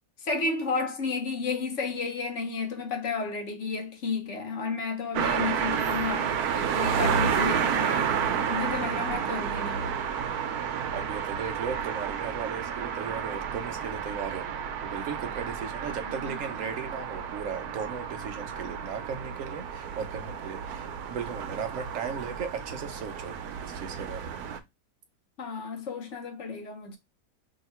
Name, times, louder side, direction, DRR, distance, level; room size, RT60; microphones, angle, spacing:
voice 1, 0.2-9.9 16.0-16.4 25.4-27.0, left 4 dB, 60° left, 1.0 m, -32 dB
sound 1, 5.1-24.6, right 7 dB, 90° right, 1.1 m, -31 dB
voice 2, 10.6-14.5 14.8-24.4, right 6 dB, 65° right, 0.9 m, -37 dB
2.8 x 2.8 x 4.1 m
omnidirectional pair, 1.6 m